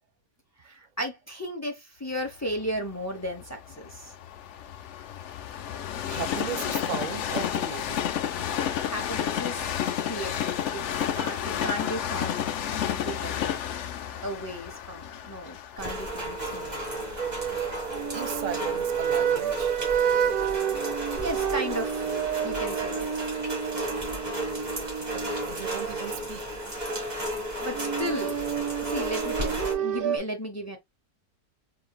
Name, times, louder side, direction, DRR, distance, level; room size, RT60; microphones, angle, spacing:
voice 1, 0.6-4.1 8.8-9.7 10.0-10.8 11.1-12.4 12.7-13.3 14.2-16.8 21.2-22.1 22.4-23.3 27.6-28.4 28.8-30.8, equal, 25° left, 0.3 m, -35 dB
Train, 2.5-18.4 19.0-19.1, left 9 dB, 65° left, 0.7 m, -31 dB
voice 2, 6.1-8.1 17.4-17.5 18.1-19.7 25.0-26.7, right 9 dB, 60° right, 0.5 m, -37 dB
Rain, 15.8-29.7, right 1 dB, 30° right, 1.7 m, -34 dB
sound 1, 17.2-26.2 27.7-30.2, right 8 dB, 75° right, 1.2 m, -29 dB
4.4 x 3.9 x 2.2 m
omnidirectional pair, 1.6 m